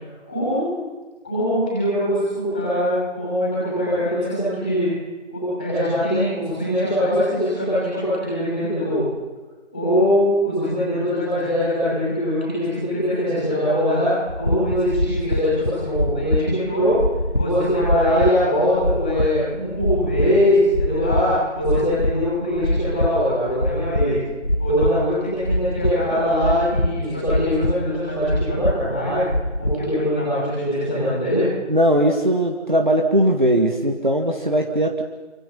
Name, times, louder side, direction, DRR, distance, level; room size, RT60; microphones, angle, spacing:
voice 1, 0.2-0.7 1.2-4.9 5.3-9.0 9.7-14.1 14.4-16.9 17.3-21.3 21.5-24.1 24.6-29.2 29.6-31.4, equal, 5° left, -9 dB, 6.2 m, -22 dB
sound 1, 14.3-29.9, left 1 dB, 40° left, 1.4 m, -24 dB
voice 2, 31.7-35.0, right 1 dB, 40° right, 2 dB, 2.2 m, -19 dB
28.5 x 26.5 x 5.6 m, 1.3 s
figure-of-eight pair, 175°, 37 cm